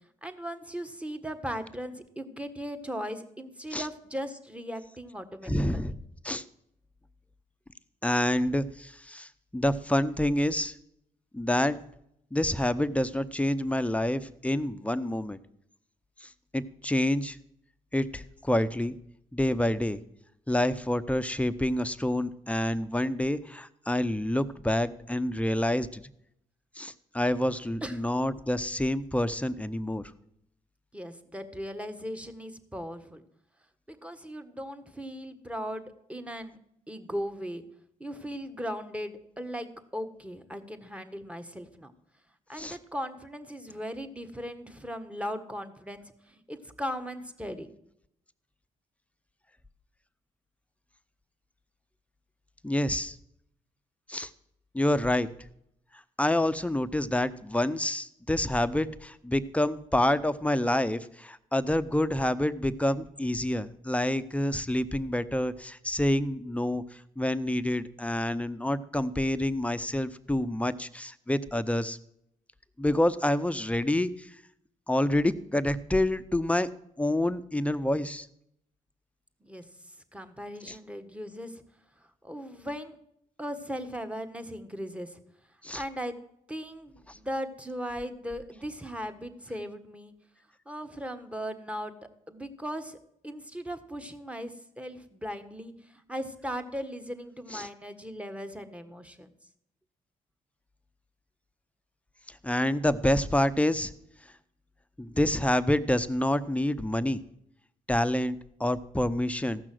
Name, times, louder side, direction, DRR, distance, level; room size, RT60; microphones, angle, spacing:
voice 1, 0.2-5.8 27.8-28.0 30.9-33.2 33.9-36.6 36.9-37.6 38.0-41.9 42.5-47.7 79.4-81.6 82.2-83.0 83.4-85.2 85.7-86.2 86.5-90.1 90.6-91.9 92.3-93.0 93.2-99.3, equal, 10° right, 8 dB, 1.5 m, -38 dB
voice 2, 5.5-6.4 8.0-10.8 11.3-11.8 12.3-15.4 16.2-17.4 17.9-19.0 19.3-20.0 20.5-26.0 26.8-30.1 42.6-42.8 52.6-53.2 54.1-54.3 54.7-55.3 56.2-72.0 72.8-74.3 74.9-76.7 77.0-78.3 80.7-80.8 85.6-85.8 87.1-87.2 97.5-97.7 102.4-103.9 105.0-107.2 107.9-109.7, left 1 dB, 10° left, 13 dB, 0.7 m, -28 dB
15.0 x 6.1 x 7.7 m, 0.74 s
supercardioid pair, 60°, 16 cm